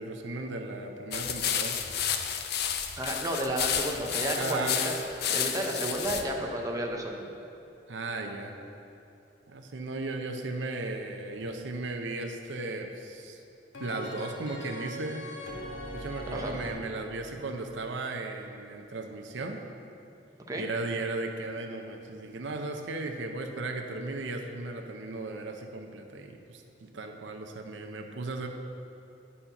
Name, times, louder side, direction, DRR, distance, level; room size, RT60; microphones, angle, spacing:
voice 1, 0.0-1.8 4.4-4.8 7.9-8.5 9.5-13.4 13.8-15.2 15.9-19.6 20.6-28.5, right 2 dB, 80° right, 4 dB, 0.6 m, -36 dB
sound 1, 1.1-6.2, left 8 dB, 60° left, 0.5 m, -31 dB
voice 2, 3.0-4.9 5.3-7.3 16.3-16.6 20.5-20.6, right 1 dB, 20° right, 0 dB, 0.7 m, -32 dB
sound 2, 13.7-16.7, left 1 dB, 90° left, 1.4 m, -40 dB
8.8 x 4.2 x 5.6 m, 2.8 s
head